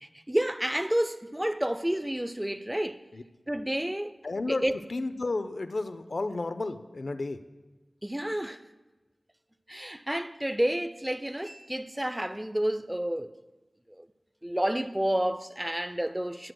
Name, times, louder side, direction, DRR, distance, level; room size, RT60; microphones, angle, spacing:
voice 1, 0.0-3.0 3.5-4.1 4.5-4.7 8.0-8.6 9.7-13.3 13.9-14.1 14.4-16.5, right 1 dB, 10° right, 0.4 m, -30 dB
voice 2, 4.2-4.6 4.9-7.4, left 2 dB, 65° left, 0.4 m, -32 dB
18.5 x 7.6 x 2.2 m
wide cardioid pair, 70°, 0 cm